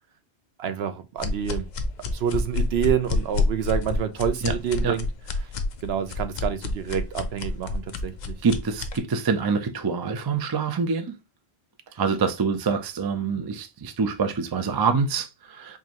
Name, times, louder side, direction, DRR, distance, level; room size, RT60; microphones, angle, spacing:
voice 1, 0.6-1.7 2.1-5.1 5.8-8.3, right 9 dB, 75° right, 0.9 m, -28 dB
sound 1, 1.2-9.0, left 3 dB, 50° left, 0.6 m, -28 dB
voice 2, 8.4-11.1 12.0-15.8, right 5 dB, 40° right, 0.3 m, -25 dB
4.7 x 2.6 x 2.9 m
omnidirectional pair, 1.1 m